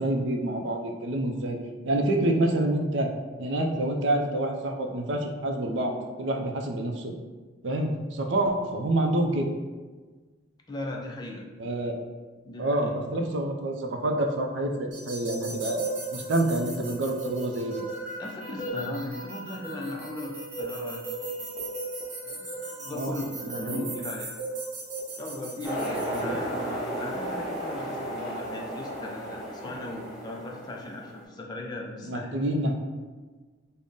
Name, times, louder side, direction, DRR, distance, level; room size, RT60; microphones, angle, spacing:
voice 1, 0.0-1.6 1.8-3.1 3.4-7.1 7.6-9.5 11.6-11.9 12.6-15.8 16.1-17.8 22.9-23.2 23.5-23.8 26.1-26.3 32.0-32.7, right 1 dB, 65° right, 2 dB, 0.4 m, -27 dB
voice 2, 10.7-11.5 12.4-12.9 18.2-21.1 21.5-21.6 22.2-24.3 25.2-32.4, left 2 dB, 20° left, 0 dB, 0.4 m, -38 dB
sound 1, 14.9-26.2, right 2 dB, 40° right, 0.8 m, -36 dB
sound 2, 25.6-31.2, right 1 dB, ahead, 1.0 m, -34 dB
3.6 x 2.0 x 3.8 m, 1.4 s
head